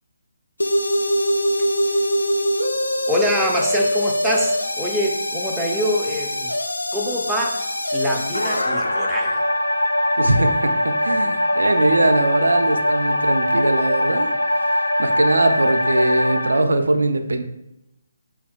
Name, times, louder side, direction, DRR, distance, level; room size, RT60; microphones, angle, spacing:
sound 1, 0.6-16.6, left 1 dB, 75° left, 0.4 m, -22 dB
voice 1, 3.1-6.5 6.9-7.6 7.9-9.4, equal, 5° right, -2 dB, 0.4 m, -25 dB
voice 2, 10.2-14.3 14.7-17.4, right 2 dB, 65° right, 7 dB, 0.3 m, -21 dB
5.4 x 2.3 x 2.2 m, 0.87 s
figure-of-eight pair, 140°, 0 cm